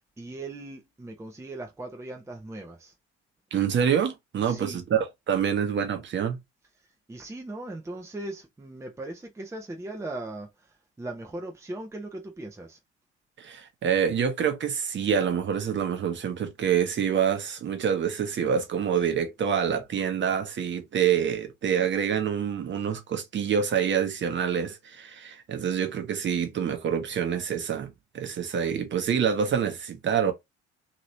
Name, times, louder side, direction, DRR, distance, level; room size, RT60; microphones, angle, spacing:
voice 1, 0.2-2.9 4.4-4.8 7.1-12.8, right 2 dB, 10° right, 0.8 m, -39 dB
voice 2, 3.5-6.4 13.4-30.3, right 8 dB, 35° right, 1.0 m, -26 dB
3.0 x 2.9 x 2.8 m
figure-of-eight pair, 55°, 34 cm